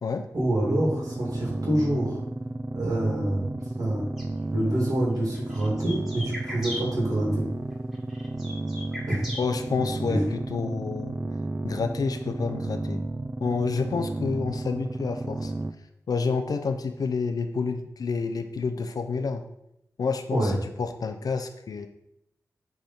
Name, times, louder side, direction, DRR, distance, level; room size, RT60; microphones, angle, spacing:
voice 1, 0.3-2.2 2.7-4.1 4.5-7.4 9.1-9.2 10.1-10.2 20.3-20.5, right 1 dB, 65° right, -3 dB, 2.6 m, -26 dB
sound 1, 0.6-15.7, right 2 dB, 30° right, 0.4 m, -33 dB
sound 2, 4.2-4.3 5.2-6.8 7.9-9.4, left 1 dB, 5° right, 2.1 m, -37 dB
voice 2, 9.4-11.2 11.6-13.0 13.4-15.5 16.1-19.4 20.0-21.9, left 4 dB, 80° left, 7 dB, 0.4 m, -29 dB
8.0 x 3.6 x 4.3 m, 0.80 s
wide cardioid pair, 75°, 6 cm